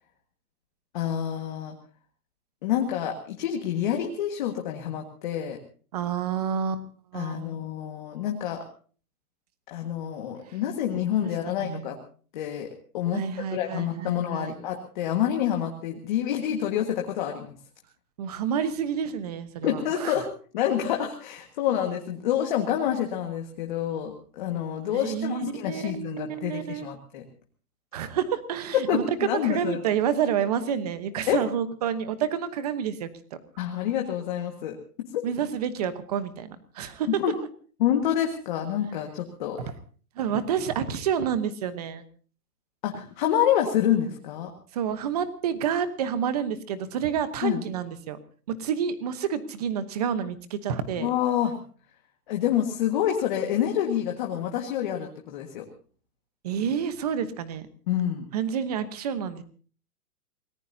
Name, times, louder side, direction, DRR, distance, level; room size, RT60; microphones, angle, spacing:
voice 1, 0.9-1.8 2.6-5.6 7.1-8.6 9.7-12.0 12.3-12.7 12.9-13.2 13.5-17.5 19.6-20.3 20.5-27.2 28.9-29.8 31.3-31.4 33.6-34.8 36.8-37.4 37.8-39.6 42.8-44.5 47.4-47.6 51.0-51.5 52.3-55.6 57.9-58.3, left 10 dB, 30° left, 2 dB, 1.7 m, -27 dB
voice 2, 5.9-6.8 7.1-7.5 10.9-11.9 13.1-14.6 18.2-20.2 24.9-26.9 27.9-29.0 29.4-33.1 35.2-37.2 40.2-42.0 44.7-48.2 48.5-51.1 56.4-57.7 58.3-59.4, right 8 dB, 25° right, 12 dB, 1.0 m, -29 dB
27.5 x 19.0 x 2.8 m, 0.41 s
hypercardioid pair, 175°, 46 cm